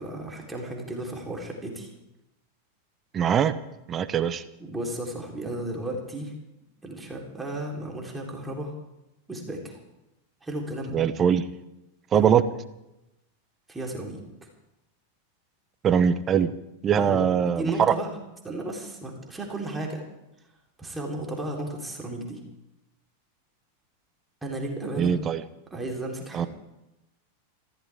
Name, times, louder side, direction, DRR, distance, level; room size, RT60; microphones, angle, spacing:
voice 1, 0.0-1.9 4.6-6.3 6.8-8.7 9.3-9.8 10.4-11.0 12.1-12.3 13.7-14.2 16.9-18.1 18.4-20.0 20.8-22.4 24.4-25.1 25.7-26.5, right 1 dB, 10° right, 0 dB, 3.7 m, -34 dB
voice 2, 3.1-3.5 3.9-4.4 10.9-11.4 12.1-12.4 15.8-16.5 16.8-17.9 24.9-25.4 26.3-26.5, right 8 dB, 25° right, 15 dB, 1.0 m, -22 dB
26.0 x 15.0 x 3.6 m, 0.92 s
figure-of-eight pair, 90°, 0 cm